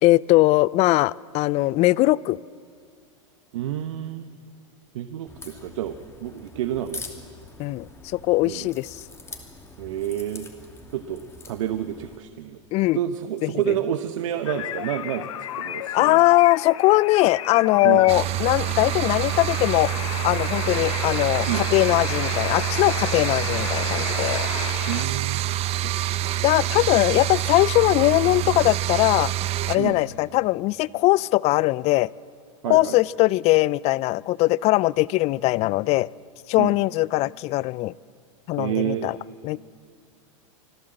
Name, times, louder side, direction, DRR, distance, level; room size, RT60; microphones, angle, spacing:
voice 1, 0.0-2.4 7.6-9.0 12.7-13.0 13.4-13.7 15.9-19.9 20.2-24.5 26.4-29.3 29.7-32.1 32.7-36.1 36.5-37.9 38.5-39.2 39.4-39.7, left 19 dB, 40° left, 23 dB, 0.4 m, -20 dB
voice 2, 3.5-4.3 4.9-7.0 8.4-8.7 9.8-10.5 10.9-11.2 11.5-12.6 12.9-16.2 17.8-18.0 21.5-21.6 24.9-25.4 29.8-30.0 32.6-33.0 36.6-36.7 38.6-39.1, right 11 dB, 75° right, 9 dB, 1.0 m, -29 dB
Crack, 5.3-12.2, left 3 dB, 15° left, 2.7 m, -43 dB
sound 1, 14.5-25.1, left 12 dB, 75° left, 0.9 m, -33 dB
sound 2, 18.1-29.8, right 14 dB, 40° right, 1.0 m, -26 dB
25.5 x 15.0 x 7.8 m, 2.3 s
hypercardioid pair, 110°, 17 cm